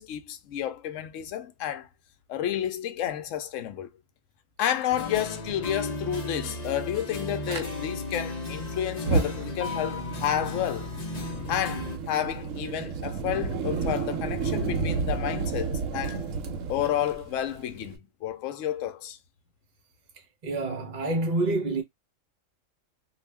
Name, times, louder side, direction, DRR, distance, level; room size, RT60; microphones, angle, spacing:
voice 1, 0.0-1.9 2.3-3.9 4.6-10.9 11.5-16.2 16.7-19.2, left 11 dB, 75° left, 0.9 m, -30 dB
sound 1, 4.9-12.0, left 2 dB, 40° left, 0.8 m, -35 dB
Fire, 7.5-7.6 8.9-18.0, right 4 dB, 80° right, 1.0 m, -31 dB
voice 2, 20.4-21.8, right 2 dB, 40° right, 0.8 m, -27 dB
2.4 x 2.4 x 3.2 m
omnidirectional pair, 1.3 m